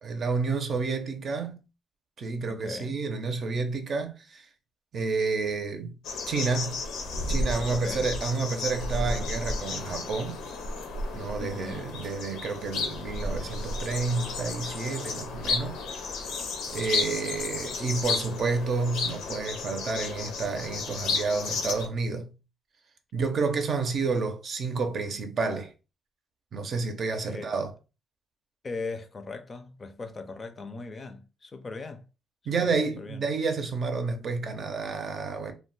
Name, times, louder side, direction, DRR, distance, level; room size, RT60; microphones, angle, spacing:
voice 1, 0.0-1.6 2.2-4.5 4.9-5.9 6.3-6.8 7.3-10.4 11.1-16.0 16.7-22.3 23.1-25.7 26.5-27.7 32.5-35.5, right 4 dB, 55° right, 0.6 m, -30 dB
voice 2, 2.5-3.0 7.7-8.1 11.4-11.9 27.3-27.5 28.6-32.1 32.5-33.3, left 3 dB, 35° left, 0.5 m, -39 dB
sound 1, 6.0-21.9, left 3 dB, 90° left, 0.6 m, -33 dB
2.3 x 2.2 x 3.9 m
cardioid pair, 90°, 0 cm